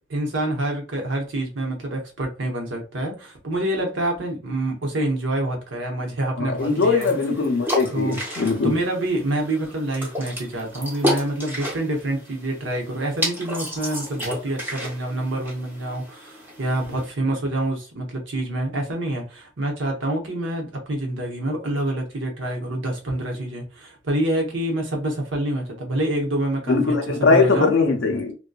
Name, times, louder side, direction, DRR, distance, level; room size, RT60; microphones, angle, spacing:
voice 1, 0.1-7.1 7.9-8.2 8.6-27.0 27.3-27.7, right 1 dB, 75° right, 0.9 m, -27 dB
voice 2, 6.4-8.8 26.7-28.3, left 4 dB, 70° left, 0.5 m, -20 dB
sound 1, 6.6-17.1, equal, 10° right, 0.7 m, -32 dB
2.6 x 2.2 x 2.3 m
head